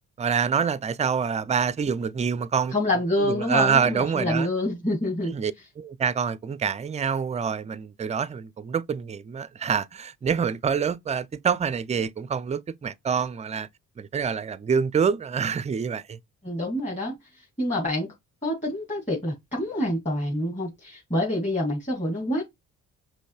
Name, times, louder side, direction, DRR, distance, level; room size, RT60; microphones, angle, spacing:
voice 1, 0.2-2.7 3.3-4.5 5.3-13.7 14.0-16.2, right 6 dB, 15° right, 0.4 m, -26 dB
voice 2, 2.7-5.3 16.4-18.1 18.4-22.4, left 1 dB, 15° left, 2.2 m, -27 dB
5.2 x 3.1 x 2.3 m
hypercardioid pair, 45°, 41 cm